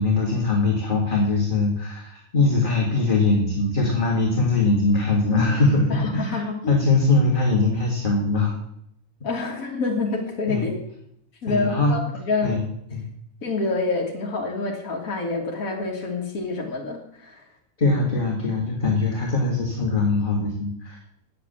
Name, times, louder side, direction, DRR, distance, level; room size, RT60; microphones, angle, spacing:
voice 1, 0.0-8.5 10.5-10.7 11.5-12.0 12.4-12.6 12.9-13.0 17.8-21.0, left 3 dB, 40° left, -1 dB, 2.0 m, -21 dB
voice 2, 5.9-6.8 9.2-10.8 11.4-12.6 13.4-17.5, left 3 dB, 80° left, 0 dB, 2.0 m, -27 dB
9.2 x 8.4 x 7.3 m, 0.73 s
omnidirectional pair, 1.4 m